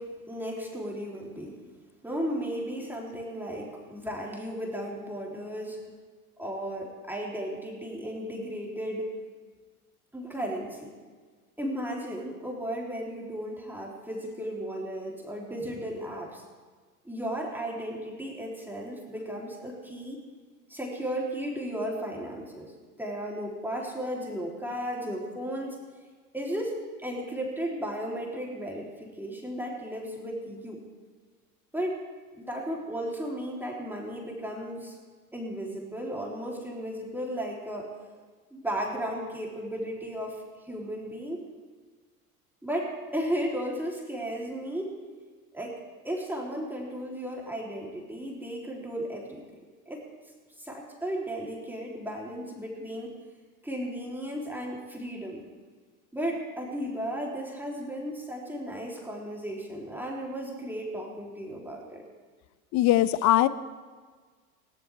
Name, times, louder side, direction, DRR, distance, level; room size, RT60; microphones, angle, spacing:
voice 1, 0.0-1.6 2.0-5.8 6.4-9.1 10.1-10.9 11.6-16.4 17.0-20.2 20.7-22.7 23.0-25.8 26.3-30.8 31.7-32.0 32.3-35.0 35.3-37.9 38.5-41.4 42.6-45.0 45.5-45.8 46.0-49.4 49.8-50.0 50.6-53.2 53.6-55.4 56.1-62.0, equal, 5° right, -2 dB, 3.4 m, -35 dB
voice 2, 62.7-63.5, left 14 dB, 40° left, 15 dB, 0.9 m, -21 dB
20.0 x 17.5 x 3.5 m, 1.5 s
hypercardioid pair, 85°, 45 cm